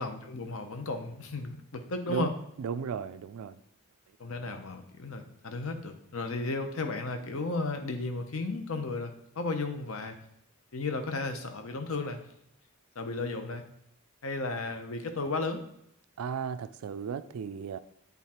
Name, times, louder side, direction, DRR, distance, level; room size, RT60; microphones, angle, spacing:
voice 1, 0.0-2.3 4.2-10.2 10.7-12.2 13.0-13.6 14.2-15.6, left 3 dB, 70° left, 6 dB, 0.8 m, -34 dB
voice 2, 2.6-3.6 16.2-17.8, right 6 dB, 80° right, 13 dB, 0.4 m, -35 dB
8.2 x 3.6 x 4.3 m, 0.75 s
head